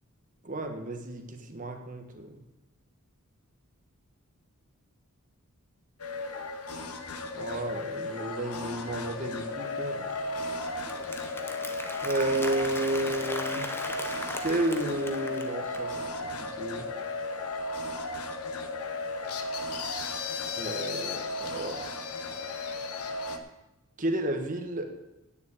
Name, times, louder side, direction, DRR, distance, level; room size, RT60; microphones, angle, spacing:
voice 1, 0.4-2.3 7.3-10.1 12.0-13.7 14.4-16.0 16.4-16.9 20.6-21.8 24.0-24.9, right 1 dB, 35° right, 4 dB, 1.4 m, -32 dB
sound 1, 6.0-23.4, left 2 dB, 85° left, 1.2 m, -35 dB
Applause, 10.1-15.9, left 1 dB, 10° left, 0.8 m, -39 dB
9.3 x 7.1 x 8.8 m, 0.96 s
head